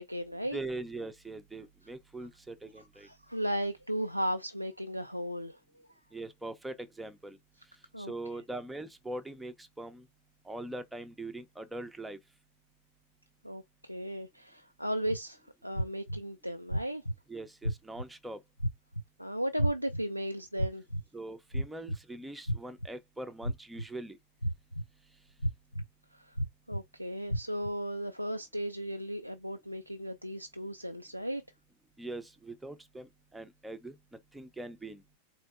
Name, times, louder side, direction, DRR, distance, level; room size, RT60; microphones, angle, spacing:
voice 1, 0.0-0.6 3.0-5.6 7.9-8.1 13.4-17.0 19.2-20.8 26.1-26.4 26.7-31.4, equal, 90° right, 0.3 m, -36 dB
voice 2, 0.5-3.1 6.1-7.4 8.0-10.1 10.4-12.2 17.3-18.4 21.1-24.2 32.0-34.0 34.3-35.0, right 2 dB, 5° right, 0.7 m, -42 dB
sound 1, 15.1-15.2 15.7-16.2 16.7-17.1 17.6-18.0 18.6-19.0 19.6-20.0 20.6-21.0 21.5-22.0 22.5-22.9 23.4-23.9 24.4-24.8 25.4-25.8 26.4-26.8 27.3-27.7, equal, 85° left, 0.4 m, -31 dB
4.3 x 2.9 x 2.4 m
figure-of-eight pair, 90°, 0 cm